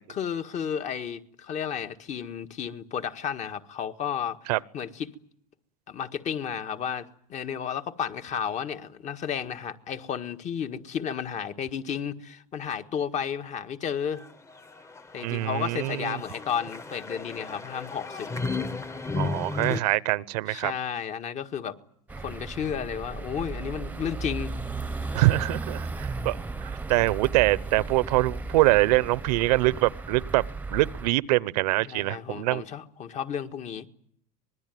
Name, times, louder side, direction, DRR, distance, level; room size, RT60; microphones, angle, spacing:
voice 1, 0.1-5.1 5.9-14.2 15.1-18.3 20.5-21.8 22.2-24.5 31.8-33.9, left 8 dB, 35° left, 1.7 m, -32 dB
sound 1, 14.1-19.8, left 3 dB, 15° left, 1.2 m, -34 dB
voice 2, 15.2-16.2 19.1-20.7 25.1-30.4 30.7-32.6, right 19 dB, 70° right, 1.0 m, -24 dB
sound 2, 22.1-31.1, right 3 dB, 10° right, 1.1 m, -35 dB
25.0 x 21.0 x 9.4 m
supercardioid pair, 115°, 21 cm